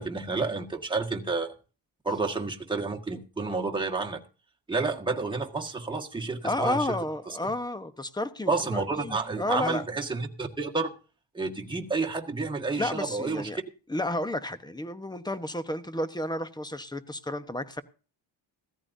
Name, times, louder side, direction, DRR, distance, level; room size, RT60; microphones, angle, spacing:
voice 1, 0.0-1.5 2.0-4.2 4.7-6.8 7.3-7.4 8.5-10.9 11.3-13.5, right 3 dB, 10° right, 1.7 m, -30 dB
voice 2, 6.4-9.8 12.8-13.6 13.9-17.8, left 1 dB, 10° left, 1.0 m, -31 dB
16.5 x 14.0 x 2.7 m
wide cardioid pair, 130°, 46 cm